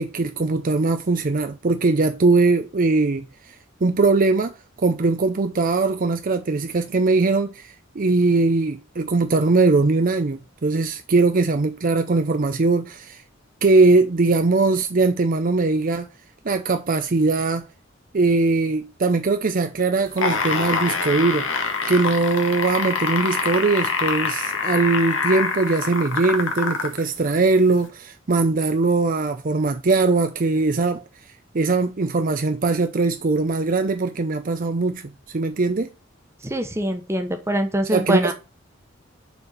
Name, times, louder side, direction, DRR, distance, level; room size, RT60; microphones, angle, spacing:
voice 1, 0.0-3.3 3.8-4.5 4.8-13.2 13.6-16.1 16.4-17.7 18.1-21.5 21.9-31.0 31.5-35.0 35.3-35.9 37.9-38.3, right 3 dB, 45° right, 0.6 m, -20 dB
sound 1, 20.1-27.0 27.8-27.9, left 4 dB, 80° left, 1.7 m, -25 dB
voice 2, 36.4-38.3, right 1 dB, 15° right, 1.1 m, -23 dB
6.7 x 4.4 x 5.1 m
head